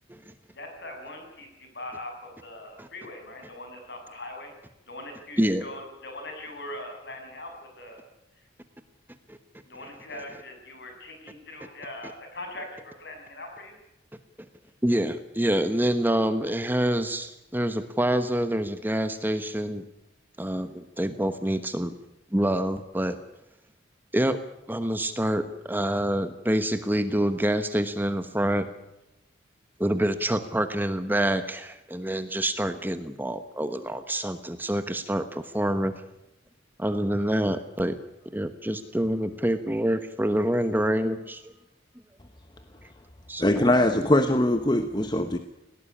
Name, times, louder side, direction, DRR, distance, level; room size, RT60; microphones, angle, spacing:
voice 1, 0.5-4.5 4.9-8.0 8.3-8.5 9.7-13.7, left 1 dB, 60° left, 7.3 m, -41 dB
voice 2, 14.8-19.8 20.4-21.9 22.3-23.2 24.1-24.4 24.7-28.7 29.8-35.9 36.8-38.0 38.3-41.4 43.3-43.7, right 1 dB, 10° right, 1.1 m, -26 dB
voice 3, 43.4-45.4, left 1 dB, 25° left, 1.1 m, -22 dB
19.0 x 18.0 x 9.9 m
head